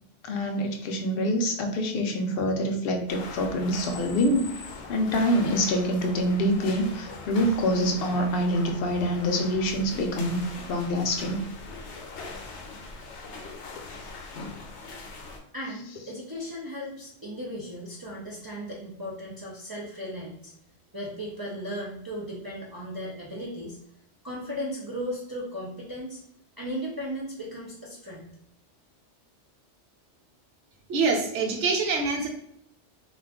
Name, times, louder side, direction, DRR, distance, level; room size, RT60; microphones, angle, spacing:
voice 1, 0.2-4.5 4.9-11.4, equal, 65° left, 4 dB, 0.7 m, -26 dB
sound 1, 3.1-15.4, left 3 dB, 80° left, 0.9 m, -41 dB
voice 2, 15.5-20.5 20.9-23.8 24.2-26.2 26.6-28.3, equal, 40° right, -5 dB, 0.3 m, -36 dB
voice 3, 30.9-32.3, right 4 dB, 85° right, 1 dB, 1.0 m, -25 dB
2.4 x 2.3 x 3.4 m, 0.73 s
omnidirectional pair, 1.2 m